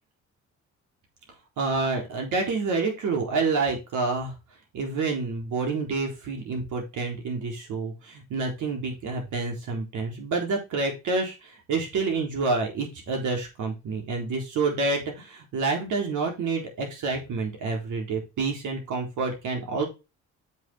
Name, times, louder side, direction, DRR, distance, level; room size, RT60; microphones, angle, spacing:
voice 1, 1.6-4.3 4.7-19.9, right 3 dB, 80° right, 2 dB, 4.0 m, -28 dB
7.7 x 7.6 x 3.8 m, 0.26 s
cardioid pair, 90°, 30 cm